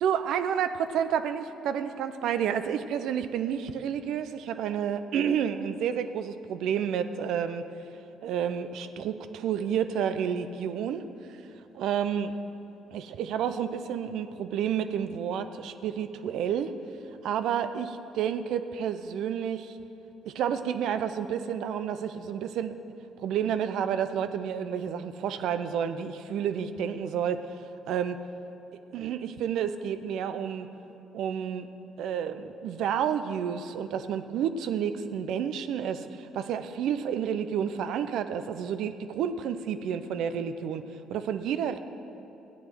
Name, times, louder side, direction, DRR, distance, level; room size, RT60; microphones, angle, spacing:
voice 1, 0.0-7.6 8.2-11.0 11.7-12.3 12.9-16.7 17.2-19.8 20.2-22.7 23.2-27.6 27.9-28.2 28.9-30.7 31.1-31.7 32.0-40.8 41.1-41.8, right 8 dB, 70° right, 10 dB, 0.6 m, -30 dB
14.0 x 9.7 x 6.1 m, 2.9 s
hypercardioid pair, 55°, 0 cm